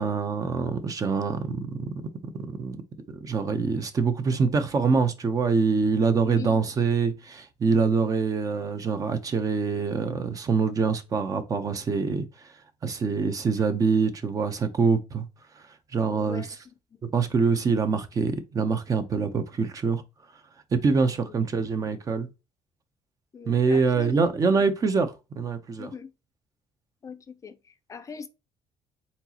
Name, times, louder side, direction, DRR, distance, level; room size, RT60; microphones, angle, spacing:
voice 1, 0.0-2.0 2.3-2.8 3.1-12.5 12.8-15.3 15.6-15.7 15.9-16.5 17.0-20.0 20.7-22.3 23.5-25.9, right 5 dB, 35° right, 0.8 m, -25 dB
voice 2, 4.2-4.6 6.1-6.7 16.1-16.5 16.9-17.0 21.3-21.4 23.3-24.2 24.5-24.6 25.8-26.1 27.0-28.3, left 5 dB, 30° left, 0.5 m, -41 dB
4.3 x 4.0 x 2.9 m
cardioid pair, 130°, 10 cm